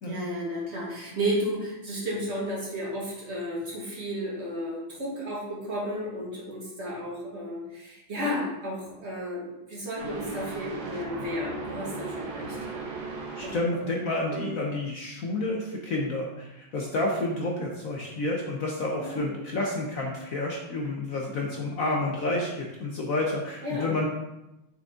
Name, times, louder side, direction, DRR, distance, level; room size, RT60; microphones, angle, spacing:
voice 1, 0.0-12.9 13.4-14.0 14.3-14.5 19.0-19.4 23.6-24.0, equal, 35° right, -5 dB, 1.9 m, -33 dB
sound 1, 10.0-13.6, right 3 dB, 60° right, 1.4 m, -36 dB
voice 2, 13.4-24.1, left 2 dB, 55° left, -1 dB, 1.0 m, -30 dB
6.3 x 5.2 x 3.7 m, 0.95 s
omnidirectional pair, 2.2 m